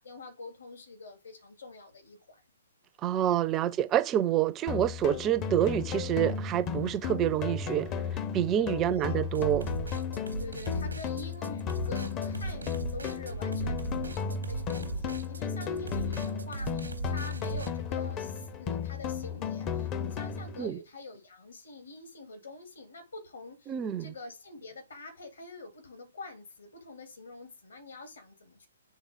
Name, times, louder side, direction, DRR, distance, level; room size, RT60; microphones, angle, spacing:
voice 1, 0.0-2.4 8.5-9.2 10.4-23.7 24.0-28.7, left 3 dB, 70° left, 2.5 m, -46 dB
voice 2, 3.0-7.9 8.3-9.7 20.6-20.8 23.7-24.1, right 11 dB, 20° right, 0.4 m, -27 dB
sound 1, 4.7-20.7, left 6 dB, 25° left, 0.6 m, -34 dB
sound 2, 9.3-17.7, right 3 dB, 80° right, 0.9 m, -37 dB
9.3 x 3.5 x 3.5 m
figure-of-eight pair, 125°, 0 cm